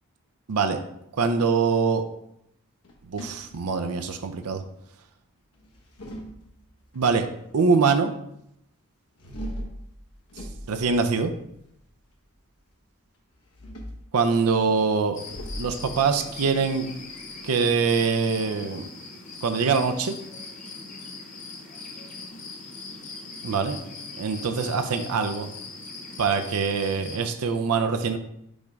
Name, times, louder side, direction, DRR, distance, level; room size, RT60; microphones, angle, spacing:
voice 1, 0.5-0.8 1.1-2.0 3.1-4.6 6.9-7.3 7.5-8.1 10.7-11.3 14.1-15.2 15.6-16.8 17.4-18.9 19.4-20.1 23.4-23.8 24.2-25.5 26.2-28.2, right 5 dB, 85° right, 7 dB, 0.5 m, -23 dB
sound 1, 2.8-4.2 5.5-6.9 9.2-11.8 13.3-14.1 15.2-17.6, equal, 85° left, 1.2 m, -40 dB
sound 2, 15.1-27.2, left 3 dB, 35° left, 0.8 m, -41 dB
5.2 x 3.5 x 5.1 m, 0.77 s
head